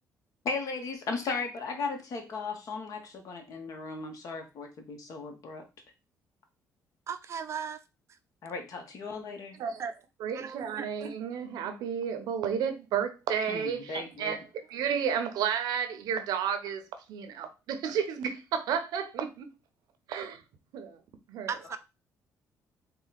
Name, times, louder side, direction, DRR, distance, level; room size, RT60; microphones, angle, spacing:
voice 1, 0.4-5.7 8.4-9.6 13.5-14.4, left 4 dB, 60° left, 1.1 m, -36 dB
voice 2, 7.1-7.8 8.1-8.2 9.8-9.9 10.3-10.9 21.5-21.8, right 7 dB, 45° right, 0.5 m, -36 dB
voice 3, 10.2-14.4 14.7-16.8 17.1-19.5 20.1-20.4 20.7-21.0 21.3-21.5, right 7 dB, 80° right, 0.7 m, -32 dB
4.0 x 2.3 x 4.0 m
cardioid pair, 100°, 7 cm